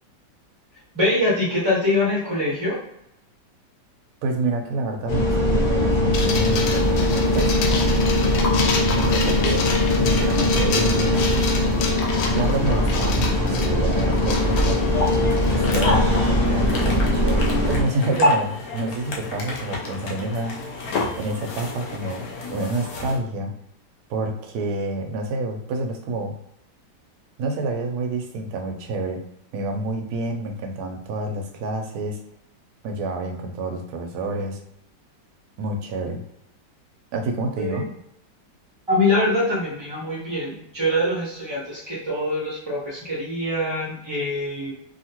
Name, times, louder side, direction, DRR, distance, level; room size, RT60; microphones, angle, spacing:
voice 1, 0.9-2.8 37.6-37.8 38.9-44.7, left 1 dB, 35° right, -6 dB, 0.4 m, -24 dB
voice 2, 4.2-7.5 8.9-11.9 12.3-14.9 15.5-20.6 21.2-22.2 22.5-23.5 24.1-26.3 27.4-29.2 29.5-32.2 32.8-34.6 35.6-36.2 37.1-37.9, right 2 dB, 70° right, 3 dB, 1.0 m, -28 dB
sound 1, 5.1-17.8, left 1 dB, 50° left, 0.5 m, -21 dB
sound 2, 6.1-15.7, left 4 dB, 90° left, 1.3 m, -29 dB
sound 3, 14.3-23.2, left 2 dB, 65° left, 1.0 m, -28 dB
2.8 x 2.6 x 2.9 m, 0.78 s
omnidirectional pair, 2.0 m